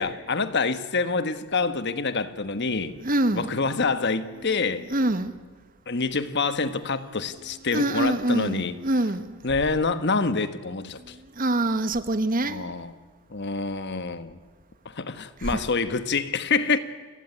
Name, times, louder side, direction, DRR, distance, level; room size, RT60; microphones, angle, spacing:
voice 1, 0.0-3.0 3.3-4.9 5.9-8.7 9.4-11.1 12.4-12.9 13.3-14.4 14.8-16.8, left 4 dB, 50° left, 1.3 m, -26 dB
voice 2, 3.0-3.5 4.9-5.3 7.7-9.4 11.0-12.7 15.4-15.6, right 1 dB, 40° right, 1.2 m, -25 dB
29.5 x 16.5 x 9.9 m
head